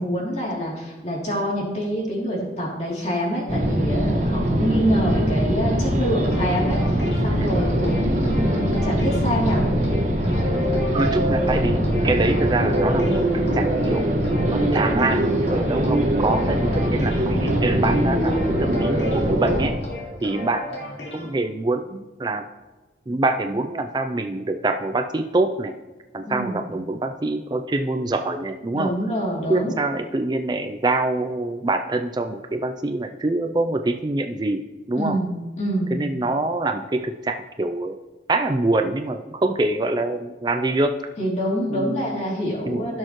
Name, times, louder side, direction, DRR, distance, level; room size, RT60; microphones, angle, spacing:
voice 1, 0.0-9.6 26.2-26.6 28.7-29.7 34.9-36.0 41.2-43.0, equal, 40° left, -4 dB, 2.9 m, -26 dB
sound 1, 3.5-19.7, equal, 40° right, 1.5 m, -22 dB
sound 2, 6.2-21.3, left 1 dB, 85° left, 2.6 m, -35 dB
voice 2, 10.9-14.1 14.5-19.8 20.2-20.7 21.1-22.4 23.1-25.8 26.1-28.9 29.5-34.6 34.9-35.2 35.9-38.0 38.3-41.0 41.7-42.2 42.7-43.0, right 2 dB, 25° right, 7 dB, 0.4 m, -25 dB
16.0 x 6.4 x 3.1 m, 1.2 s
head